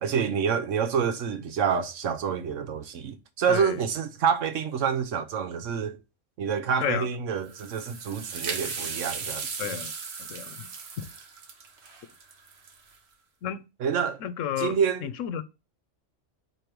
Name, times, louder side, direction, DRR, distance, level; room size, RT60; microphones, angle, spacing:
voice 1, 0.0-6.0 6.4-9.8 13.8-14.2 14.6-15.1, right 7 dB, 75° right, 1.1 m, -27 dB
voice 2, 3.5-3.8 6.8-7.1 9.6-9.9 10.2-10.7 11.0-11.1 13.4-13.6 14.2-14.8 15.0-15.4, left 9 dB, 80° left, 1.0 m, -31 dB
sound 1, 7.4-13.0, right 5 dB, 55° right, 1.2 m, -37 dB
4.6 x 4.5 x 5.1 m
omnidirectional pair, 1.3 m